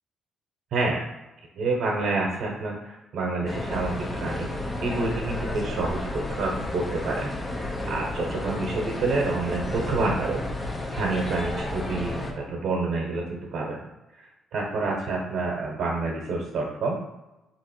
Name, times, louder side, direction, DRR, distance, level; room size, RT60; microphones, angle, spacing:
voice 1, 0.7-1.0 1.6-4.5 4.8-7.3 7.6-10.4 10.9-13.8 14.2-14.3 14.5-17.0, right 3 dB, 70° right, -2 dB, 1.0 m, -28 dB
sound 1, 3.5-12.3, left 2 dB, 25° left, 0.9 m, -32 dB
3.8 x 3.0 x 4.4 m, 1.0 s
cardioid pair, 90°, 0 cm